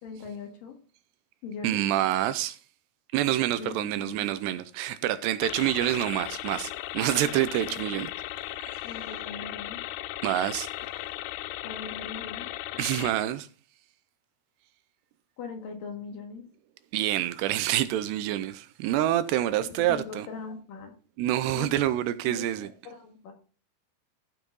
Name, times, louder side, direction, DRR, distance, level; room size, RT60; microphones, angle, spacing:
voice 1, 0.0-0.8 1.4-1.8 3.6-4.3 7.7-7.9 8.8-9.8 11.6-12.5 15.4-16.5 19.6-20.9 21.5-21.7 22.2-23.3, left 5 dB, 60° left, 3.1 m, -40 dB
voice 2, 1.6-2.6 3.1-8.1 8.7-8.8 10.2-10.7 12.8-13.5 16.9-20.3 21.2-22.7, right 13 dB, 85° right, 2.7 m, -27 dB
sound 1, 5.4-13.1, left 15 dB, 80° left, 2.4 m, -37 dB
14.5 x 5.8 x 4.0 m
omnidirectional pair, 5.0 m